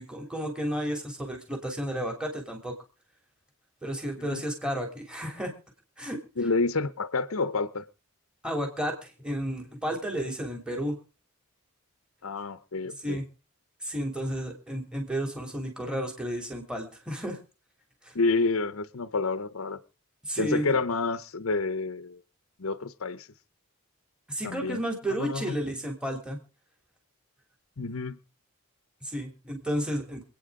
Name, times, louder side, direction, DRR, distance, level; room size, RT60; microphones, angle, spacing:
voice 1, 0.0-2.7 3.8-5.5 6.0-6.2 8.4-11.0 13.0-13.2 13.8-17.4 18.0-18.1 20.2-20.8 24.3-26.4 29.0-30.2, equal, 5° right, 3.2 m, -32 dB
voice 2, 6.4-7.8 12.2-13.2 18.2-19.8 20.4-22.2 22.6-23.3 24.4-24.8 25.1-25.6 27.8-28.2, left 3 dB, 70° left, 0.9 m, -29 dB
27.0 x 9.4 x 3.8 m
head